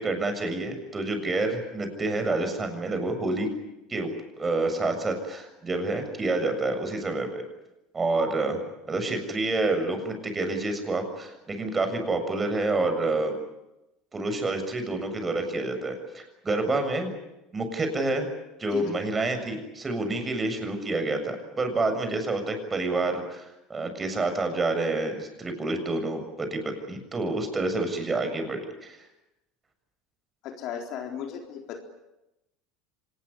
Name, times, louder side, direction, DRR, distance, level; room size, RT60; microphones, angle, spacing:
voice 1, 0.0-3.5 3.9-4.1 4.4-7.4 7.9-8.6 8.9-13.4 14.1-17.2 17.5-18.3 18.6-29.0, right 2 dB, 25° right, 7 dB, 7.1 m, -28 dB
voice 2, 30.4-31.8, left 8 dB, 60° left, 3 dB, 4.0 m, -35 dB
25.5 x 20.0 x 9.9 m, 0.94 s
hypercardioid pair, 85°, 0 cm